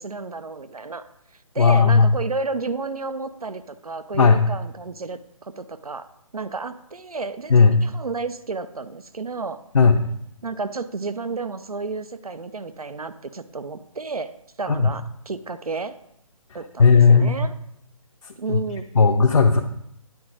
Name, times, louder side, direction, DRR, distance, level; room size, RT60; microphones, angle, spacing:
voice 1, 0.0-6.1 6.3-9.6 10.4-14.3 14.6-15.9 16.5-17.5 18.4-18.8, right 4 dB, 90° right, 12 dB, 0.5 m, -31 dB
voice 2, 1.6-2.1 4.1-4.5 7.5-7.9 9.7-10.0 14.7-14.9 16.8-17.4 18.2-18.6 18.9-19.6, left 5 dB, 60° left, 3 dB, 0.6 m, -15 dB
9.4 x 3.8 x 4.8 m, 0.75 s
figure-of-eight pair, 145°, 18 cm